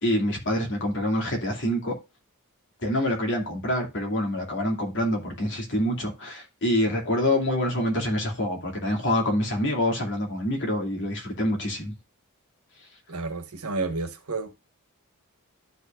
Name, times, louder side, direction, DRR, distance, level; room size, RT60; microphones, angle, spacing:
voice 1, 0.0-2.0 2.8-11.9, left 1 dB, 55° left, 2.7 m, -26 dB
voice 2, 13.1-14.5, right 3 dB, 85° right, 1.3 m, -31 dB
12.0 x 5.4 x 2.5 m
head